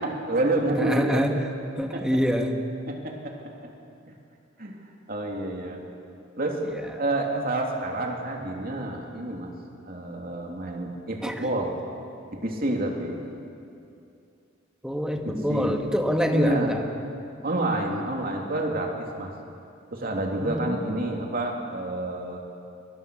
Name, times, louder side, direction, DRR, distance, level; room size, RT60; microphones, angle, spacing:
voice 1, 0.0-1.3 1.9-2.1 2.9-3.3 4.1-4.2 4.6-4.8 5.1-5.8 6.4-6.6 7.0-9.5 9.8-11.7 12.3-13.2 15.2-15.8 16.3-16.8 17.4-19.3 19.9-22.4, right 1 dB, 45° right, 1 dB, 2.8 m, -28 dB
voice 2, 0.8-1.5 1.8-2.5 6.7-6.8 11.2-11.5 14.8-16.8 20.4-20.8, equal, 5° right, 3 dB, 1.5 m, -26 dB
22.5 x 19.5 x 6.4 m, 2.5 s
head